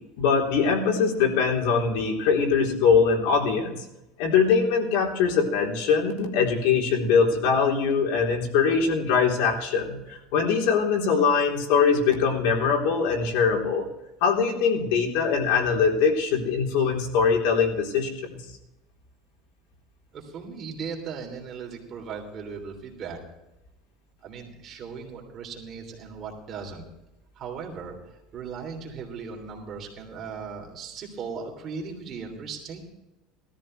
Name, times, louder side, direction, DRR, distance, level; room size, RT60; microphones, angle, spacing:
voice 1, 0.2-3.9 4.2-13.9 14.2-18.4, left 5 dB, 75° left, 0 dB, 3.5 m, -22 dB
voice 2, 20.1-23.2 24.2-26.8 27.4-28.0 28.3-32.9, right 5 dB, 35° right, 1 dB, 3.2 m, -37 dB
18.0 x 14.0 x 3.3 m, 0.93 s
cardioid pair, 145°, 0 cm